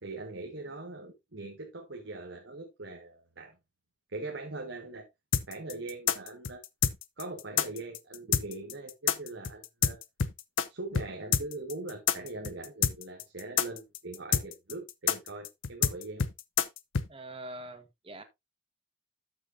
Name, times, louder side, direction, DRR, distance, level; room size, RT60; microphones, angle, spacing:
voice 1, 0.0-3.5 4.1-5.1 5.5-6.6 7.2-10.0 10.7-16.3, right 2 dB, 70° right, 1.7 m, -41 dB
sound 1, 5.3-10.7 10.9-11.1 11.3-17.1, left 8 dB, 80° left, 0.7 m, -27 dB
voice 2, 17.1-18.2, right 1 dB, 30° right, 1.4 m, -44 dB
12.5 x 6.3 x 2.6 m
head